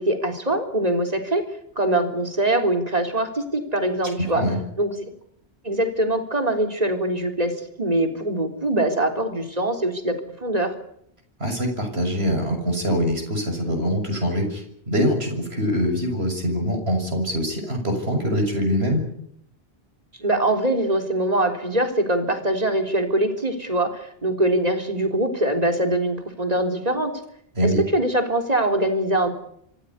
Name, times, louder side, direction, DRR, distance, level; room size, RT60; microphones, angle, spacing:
voice 1, 0.0-1.4 1.8-4.4 4.8-5.1 5.6-10.7 20.2-27.1 27.6-29.3, right 1 dB, 40° right, 5 dB, 3.8 m, -23 dB
voice 2, 11.4-19.0 27.6-27.8, equal, 75° right, 4 dB, 6.9 m, -24 dB
26.0 x 16.0 x 9.7 m, 0.70 s
omnidirectional pair, 1.1 m